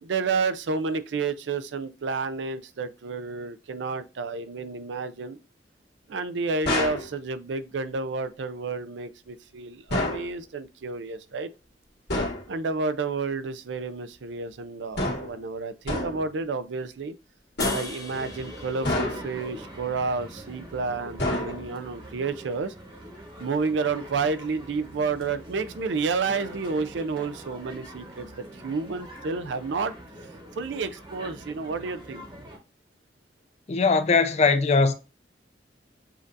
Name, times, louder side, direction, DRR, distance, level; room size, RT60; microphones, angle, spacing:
voice 1, 0.0-5.4 6.1-11.5 12.5-17.1 17.7-22.7 23.4-29.9 30.6-32.3, right 4 dB, 75° right, 0.5 m, -30 dB
sound 1, 6.6-7.1 9.9-10.3 12.1-12.5 15.0-15.4 15.9-16.3 17.6-18.1 18.8-19.4 21.2-21.9, left 1 dB, 65° left, 1.7 m, -28 dB
sound 2, 17.6-20.9, left 3 dB, 20° left, 0.9 m, -40 dB
sound 3, 18.1-32.6, equal, 30° right, 1.1 m, -43 dB
voice 2, 33.7-34.9, left 4 dB, 35° left, 0.4 m, -20 dB
7.4 x 2.6 x 2.5 m
head